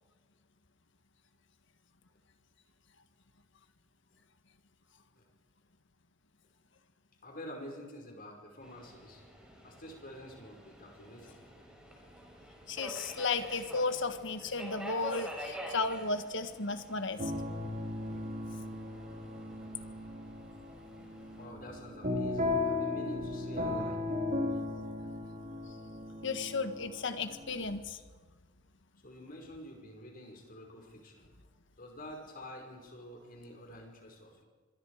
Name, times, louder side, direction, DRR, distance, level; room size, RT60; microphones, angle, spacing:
voice 1, 7.2-9.2 9.6-11.4 21.3-24.0 29.0-31.3 31.8-34.4, left 1 dB, 45° left, 1 dB, 5.7 m, -48 dB
Subway metro underground, 8.6-21.4, equal, 5° right, 5.0 m, -48 dB
voice 2, 12.7-17.3 26.2-28.0, left 3 dB, 65° left, 9 dB, 1.7 m, -34 dB
sound 1, 17.2-27.8, left 2 dB, 40° right, 2.6 m, -36 dB
26.0 x 22.0 x 5.1 m, 1.5 s
head